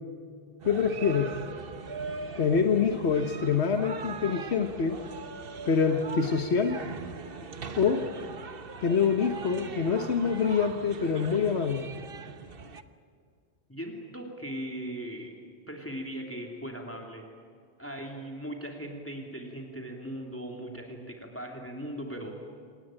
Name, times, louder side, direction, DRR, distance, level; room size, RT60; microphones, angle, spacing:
voice 1, 0.6-1.3 2.4-5.0 5.7-6.8 7.7-8.0 8.8-11.9, left 6 dB, 80° left, 6 dB, 1.5 m, -25 dB
sound 1, 0.6-12.8, right 4 dB, 60° right, 1.3 m, -41 dB
voice 2, 13.7-15.3 15.7-17.3 17.8-22.4, right 1 dB, 10° left, 1 dB, 2.9 m, -39 dB
27.5 x 19.0 x 8.9 m, 2.2 s
omnidirectional pair, 1.1 m